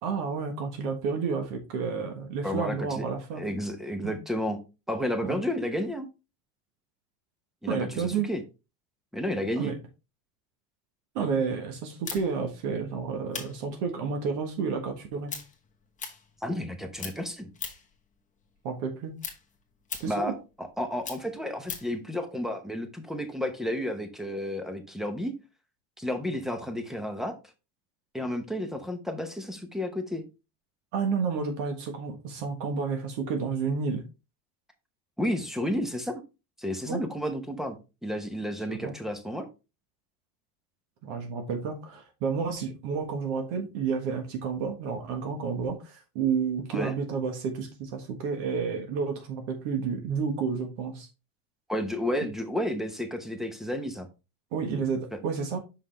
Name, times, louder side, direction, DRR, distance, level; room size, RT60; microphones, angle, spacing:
voice 1, 0.0-3.4 4.0-4.1 5.2-5.4 7.7-8.3 9.5-9.7 11.1-15.3 18.6-19.2 20.0-20.3 30.9-34.0 36.9-37.0 38.7-38.9 41.0-51.1 54.5-55.6, right 5 dB, 65° right, 5 dB, 1.6 m, -30 dB
voice 2, 2.4-3.0 3.3-4.6 4.9-6.1 7.6-8.4 9.1-9.7 16.4-17.5 20.1-25.3 26.0-27.3 28.1-30.2 35.2-36.2 36.6-39.5 46.7-46.9 51.7-54.1, left 1 dB, ahead, 7 dB, 0.7 m, -32 dB
sound 1, 12.0-16.7 17.0-18.0 18.4-22.0, left 6 dB, 15° left, 1.1 m, -40 dB
5.5 x 5.5 x 3.3 m, 0.28 s
cardioid pair, 145°, 45 cm